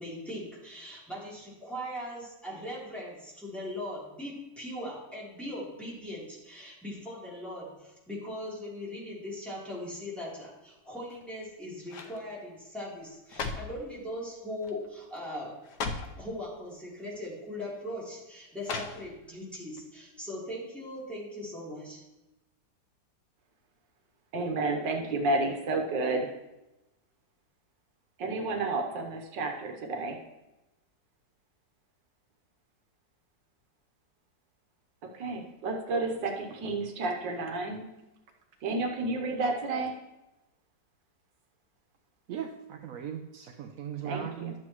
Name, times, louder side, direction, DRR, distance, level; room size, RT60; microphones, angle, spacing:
voice 1, 0.0-15.5 16.2-22.0, left 1 dB, ahead, -8 dB, 3.3 m, -40 dB
sound 1, 11.0-11.5 11.9-12.2 13.0-13.8 14.6-14.9 15.2-15.3 15.6-16.2 17.1-17.3 18.6-19.4 19.8-19.9, left 4 dB, 70° left, 1.3 m, -37 dB
voice 2, 24.3-26.3 28.2-30.2 35.1-37.9 38.6-39.9 44.0-44.5, right 2 dB, 85° right, 3 dB, 1.7 m, -31 dB
voice 3, 42.3-44.5, right 9 dB, 70° right, 5 dB, 0.8 m, -38 dB
12.0 x 7.7 x 3.1 m, 0.99 s
omnidirectional pair, 1.9 m